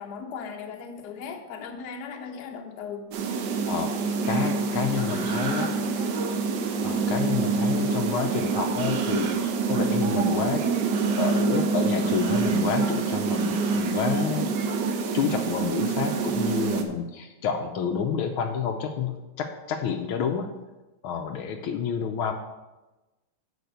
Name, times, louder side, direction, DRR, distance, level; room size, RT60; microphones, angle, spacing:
voice 1, 0.0-3.1 5.0-6.2 6.8-7.1, left 5 dB, 55° left, 4 dB, 1.3 m, -38 dB
sound 1, 3.1-16.8, right 4 dB, 65° right, 1.2 m, -26 dB
voice 2, 4.3-5.7 6.8-10.7 11.2-14.5 15.1-20.6 21.0-22.3, left 7 dB, 75° left, 5 dB, 1.5 m, -29 dB
9.3 x 4.4 x 6.8 m, 1.1 s
omnidirectional pair, 2.4 m